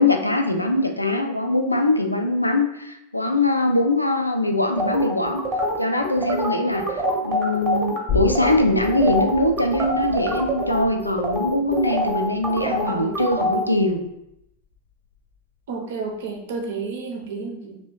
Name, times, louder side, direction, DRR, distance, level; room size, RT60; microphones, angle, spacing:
voice 1, 0.0-5.4 5.8-14.0, left 2 dB, 85° left, 5 dB, 0.3 m, -22 dB
sound 1, 4.8-8.0 8.3-8.5 8.8-13.6, equal, 20° right, 0.8 m, -25 dB
sound 2, 8.1-15.4 15.7-15.8, left 6 dB, 45° left, 0.7 m, -34 dB
voice 2, 12.6-13.2 15.7-17.8, right 4 dB, 55° right, 2 dB, 0.6 m, -31 dB
3.0 x 2.7 x 3.1 m, 0.83 s
figure-of-eight pair, 90°, 0 cm